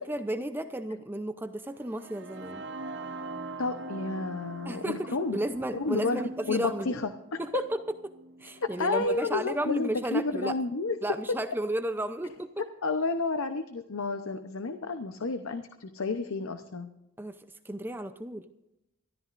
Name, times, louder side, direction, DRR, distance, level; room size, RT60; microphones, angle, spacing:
voice 1, 0.1-2.6 4.7-7.0 7.4-10.5 11.0-12.6 17.2-17.4 17.6-18.5, right 1 dB, 10° right, 9 dB, 0.5 m, -33 dB
sound 1, 1.8-9.7, right 2 dB, 55° right, 0.9 m, -43 dB
voice 2, 3.6-5.4 5.7-7.4 8.6-11.4 12.8-16.9, left 3 dB, 85° left, 9 dB, 0.8 m, -31 dB
24.0 x 13.5 x 2.6 m, 0.86 s
head